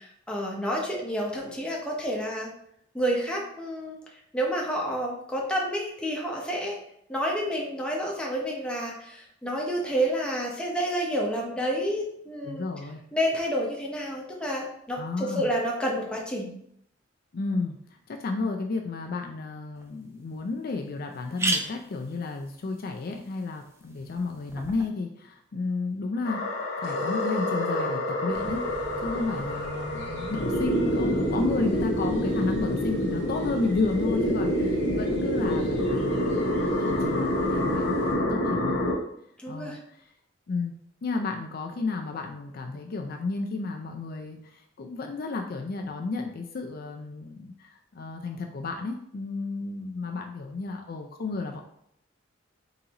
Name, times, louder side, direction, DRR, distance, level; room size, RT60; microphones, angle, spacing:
voice 1, 0.0-2.5 2.9-4.0 4.3-6.8 7.1-12.7 13.1-16.5 39.4-39.8, equal, 5° left, -2 dB, 0.7 m, -29 dB
voice 2, 12.5-13.0 15.0-15.5 17.3-17.8 18.1-36.3 36.7-38.7 39.5-40.0 40.5-40.7 41.0-51.6, left 3 dB, 50° left, 3 dB, 0.4 m, -32 dB
sound 1, 19.8-19.9 20.4-20.5 20.7-20.8 21.1-24.9, right 2 dB, 15° right, 0.4 m, -35 dB
sound 2, 26.2-38.9, left 1 dB, 80° left, 0.8 m, -27 dB
sound 3, 28.3-38.1, right 1 dB, 75° right, 1.5 m, -43 dB
3.9 x 3.9 x 2.9 m, 0.71 s
head